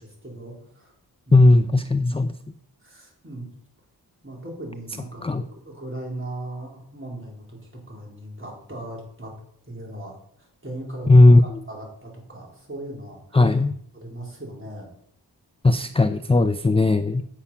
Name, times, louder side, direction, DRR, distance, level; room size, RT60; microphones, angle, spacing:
voice 1, 0.0-0.9 1.3-1.6 2.8-3.5 4.2-9.3 9.7-13.4 13.9-14.9, right 1 dB, 30° right, -2 dB, 3.9 m, -38 dB
voice 2, 1.3-2.3 5.2-5.5 11.1-11.6 13.3-13.8 15.6-17.3, left 2 dB, 15° left, 12 dB, 0.4 m, -16 dB
8.5 x 7.2 x 5.6 m, 0.68 s
wide cardioid pair, 65°, 40 cm